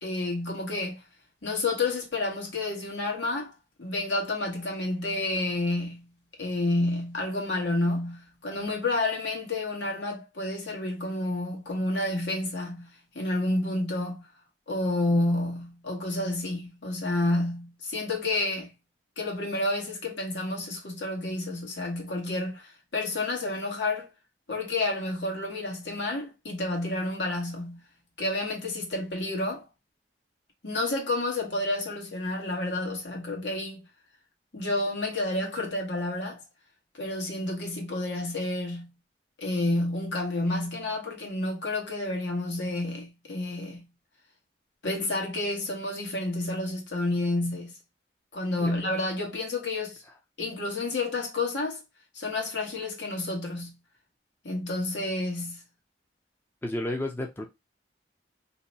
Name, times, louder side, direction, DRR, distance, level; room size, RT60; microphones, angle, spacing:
voice 1, 0.0-1.0 1.4-3.5 3.8-6.1 6.4-12.9 13.1-14.3 14.7-18.7 19.2-24.1 24.5-27.8 28.2-29.7 30.6-33.8 34.5-36.4 36.9-38.9 39.4-43.8 44.8-47.7 48.3-50.0 50.4-51.8 52.1-53.8 54.4-55.6, left 2 dB, 80° left, 1.2 m, -30 dB
voice 2, 56.6-57.5, left 1 dB, 10° left, 0.4 m, -31 dB
2.7 x 2.2 x 3.9 m
head